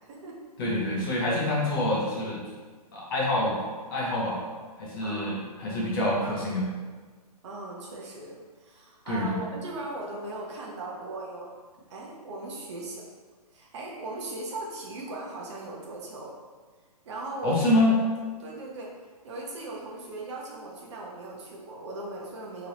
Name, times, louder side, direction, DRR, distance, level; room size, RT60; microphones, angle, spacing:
voice 1, 0.6-2.4 2.9-3.6 3.9-4.4 4.8-6.7 9.1-9.4 17.4-17.9, left 1 dB, 35° left, -4 dB, 0.8 m, -26 dB
voice 2, 5.0-5.4 7.4-11.5 11.9-13.0 13.5-16.3 17.1-17.9 18.4-18.9 19.2-22.7, right 2 dB, 45° right, -2 dB, 0.7 m, -38 dB
3.0 x 2.6 x 3.0 m, 1.4 s
hypercardioid pair, 150°, 20 cm